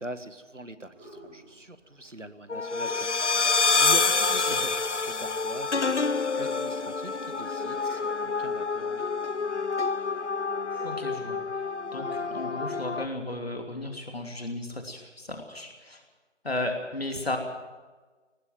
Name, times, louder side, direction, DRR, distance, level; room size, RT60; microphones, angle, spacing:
voice 1, 0.0-3.1 3.4-9.1, right 1 dB, 90° right, 11 dB, 1.8 m, -43 dB
sound 1, 0.9-4.7 5.0-8.8 9.1-12.3, equal, 10° right, 2.0 m, -47 dB
sound 2, 2.5-13.1, left 4 dB, 75° left, 0.9 m, -27 dB
voice 2, 10.8-11.4 11.9-16.0 16.4-17.4, left 2 dB, 55° left, 3 dB, 3.0 m, -34 dB
18.5 x 15.5 x 9.2 m, 1.3 s
figure-of-eight pair, 165°, 36 cm